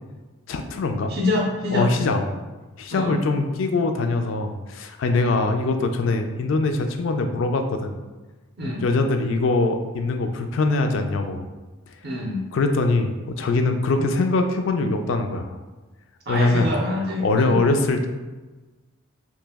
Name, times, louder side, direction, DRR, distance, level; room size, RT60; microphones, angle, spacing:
voice 1, 0.5-1.1 1.7-2.2 2.8-7.9 8.6-11.4 11.9-12.0 12.5-15.6 16.3-16.7 17.2-18.1, left 3 dB, 60° left, 6 dB, 0.3 m, -22 dB
voice 2, 1.1-1.9 2.9-3.2 8.6-8.8 12.0-12.4 16.3-17.6, left 2 dB, 45° right, -2 dB, 0.5 m, -25 dB
2.9 x 2.6 x 3.4 m, 1.2 s
head